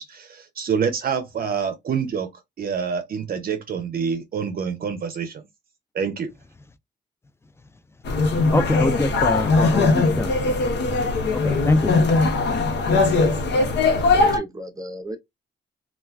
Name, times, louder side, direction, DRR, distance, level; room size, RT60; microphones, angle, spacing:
voice 1, 0.0-2.3 2.6-5.4 5.9-6.3, right 6 dB, 55° right, 0.6 m, -27 dB
sound 1, 8.1-14.4, left 3 dB, 75° left, 0.8 m, -20 dB
voice 2, 8.5-10.6 11.3-12.0, left 2 dB, 15° left, 0.4 m, -25 dB
voice 3, 13.9-15.2, right 1 dB, 20° right, 0.7 m, -35 dB
2.4 x 2.2 x 3.4 m
cardioid pair, 70°, 18 cm